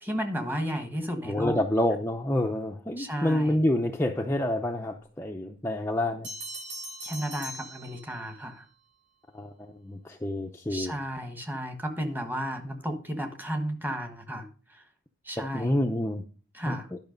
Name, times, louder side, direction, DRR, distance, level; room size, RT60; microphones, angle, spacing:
voice 1, 0.0-1.6 3.0-3.6 7.0-8.6 10.7-14.5 15.2-15.8 16.5-16.9, equal, 10° right, 6 dB, 1.3 m, -33 dB
voice 2, 1.2-6.3 9.3-11.0 15.4-16.2 16.6-17.0, left 1 dB, 10° left, 2 dB, 0.6 m, -28 dB
Bell, 6.2-8.5, right 1 dB, 85° right, 4.2 m, -40 dB
11.5 x 5.8 x 5.2 m, 0.39 s
head